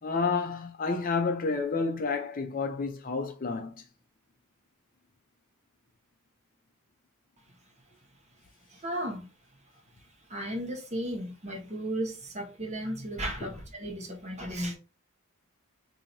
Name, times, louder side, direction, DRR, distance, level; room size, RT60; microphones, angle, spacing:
voice 1, 0.0-3.8, left 4 dB, 40° left, 0.5 m, -30 dB
voice 2, 8.7-9.3 10.3-14.8, right 1 dB, 30° right, 1.1 m, -35 dB
3.0 x 2.8 x 4.0 m
head